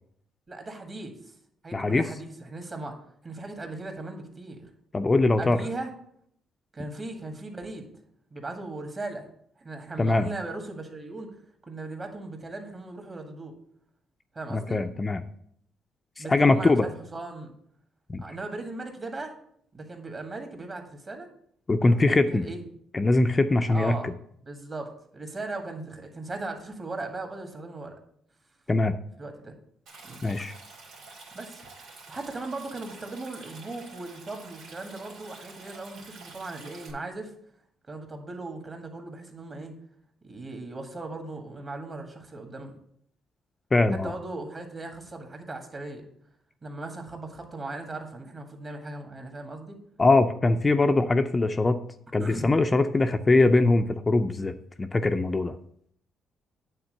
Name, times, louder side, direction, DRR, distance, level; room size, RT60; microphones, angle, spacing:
voice 1, 0.5-1.3 1.6-3.0 3.2-4.7 5.4-5.9 6.7-7.9 8.3-9.3 9.6-11.3 11.7-13.5 14.3-14.8 16.2-17.5 18.2-19.3 19.7-21.3 21.8-22.6 23.7-24.1 24.4-28.0 29.2-29.5 30.0-30.2 31.3-31.7 32.1-37.3 37.9-39.8 40.2-42.7 43.9-46.1 46.6-49.8 52.2-52.6, right 2 dB, 35° right, 4 dB, 1.8 m, -38 dB
voice 2, 1.7-2.0 4.9-5.6 10.0-10.3 14.5-15.2 16.2-16.9 18.1-18.2 21.7-22.5 22.9-24.1 28.7-28.9 30.2-30.5 43.7-44.1 50.0-51.8 52.1-55.5, left 2 dB, 25° left, 7 dB, 0.4 m, -22 dB
Stream, 29.9-36.9, right 3 dB, 85° right, 2.5 m, -48 dB
8.8 x 3.7 x 6.4 m, 0.68 s
cardioid pair, 90°, 0 cm